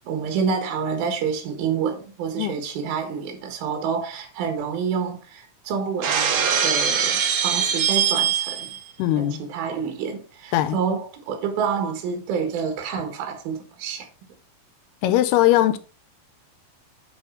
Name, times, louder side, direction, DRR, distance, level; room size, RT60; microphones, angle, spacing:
voice 1, 0.1-8.7 9.2-14.1, right 6 dB, 70° right, 3.3 m, -28 dB
Shatter, 6.0-8.8, right 7 dB, 90° right, 1.2 m, -22 dB
voice 2, 9.0-9.4 10.5-10.8 15.0-15.8, left 14 dB, 85° left, 2.7 m, -20 dB
9.8 x 5.0 x 4.9 m
omnidirectional pair, 4.7 m